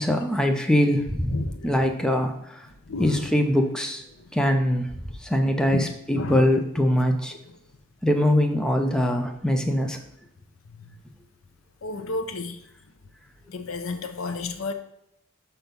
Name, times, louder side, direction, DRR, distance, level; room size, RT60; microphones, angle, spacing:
voice 1, 0.0-1.4 1.6-2.7 3.0-4.0 4.3-4.9 5.2-7.3 8.0-10.0, left 1 dB, 5° left, 3 dB, 0.6 m, -22 dB
voice 2, 1.3-1.8 2.9-3.3 5.7-5.8 6.1-6.4 10.8-10.9 11.8-12.6 13.5-14.7, left 3 dB, 70° left, 9 dB, 0.7 m, -31 dB
6.0 x 5.7 x 5.2 m, 0.80 s
head